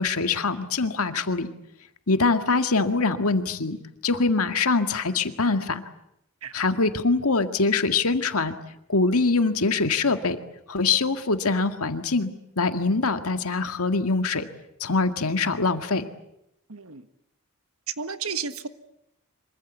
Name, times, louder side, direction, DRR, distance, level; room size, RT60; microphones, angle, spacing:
voice 1, 0.0-1.5 2.1-3.8 4.0-5.8 6.5-8.6 8.9-10.4 10.7-14.5 14.8-16.1, left 3 dB, 80° left, 8 dB, 1.9 m, -23 dB
voice 2, 16.7-17.1 17.9-18.7, right 6 dB, 75° right, 11 dB, 1.5 m, -32 dB
26.0 x 24.0 x 8.3 m, 0.81 s
head